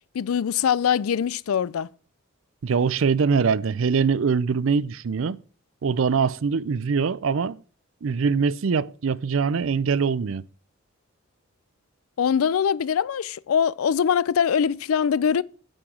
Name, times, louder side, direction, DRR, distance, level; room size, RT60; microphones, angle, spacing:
voice 1, 0.1-1.9 12.2-15.4, left 7 dB, 85° left, 0.4 m, -22 dB
voice 2, 2.6-5.4 5.8-7.6 8.0-10.4, right 5 dB, 70° right, 0.4 m, -23 dB
8.8 x 4.9 x 7.3 m
head